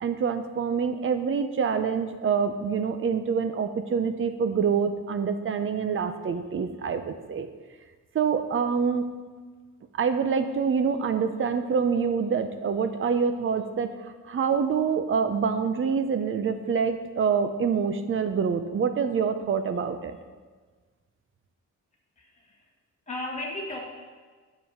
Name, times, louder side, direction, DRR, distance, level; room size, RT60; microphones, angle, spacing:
voice 1, 0.0-7.5 8.1-9.0 10.0-20.2, right 6 dB, 45° right, 9 dB, 0.7 m, -26 dB
voice 2, 22.2-22.7 23.1-23.8, left 1 dB, 25° left, -3 dB, 1.6 m, -35 dB
9.5 x 7.4 x 5.0 m, 1.4 s
wide cardioid pair, 170°, 29 cm